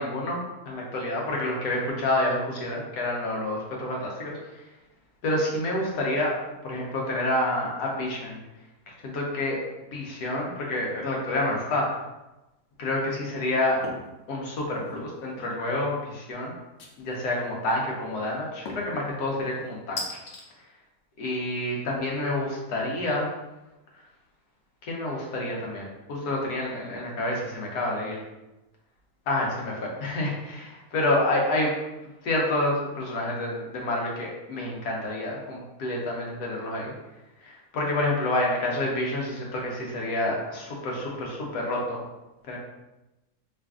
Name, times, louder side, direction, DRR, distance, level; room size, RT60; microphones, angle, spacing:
voice 1, 0.0-4.4 5.2-6.3 6.6-8.4 9.0-9.6 9.9-11.9 12.8-13.8 14.3-16.5 17.0-20.0 21.2-23.3 24.8-28.2 29.3-31.7 32.2-36.9 37.4-42.0 42.5-42.6, left 1 dB, 85° left, -2 dB, 1.4 m, -28 dB
sound 1, 13.8-14.1 14.6-15.1 16.8-17.3 18.7-19.0 20.0-20.4, left 3 dB, 65° left, 0.6 m, -37 dB
3.2 x 2.5 x 3.4 m, 1.0 s
omnidirectional pair, 1.6 m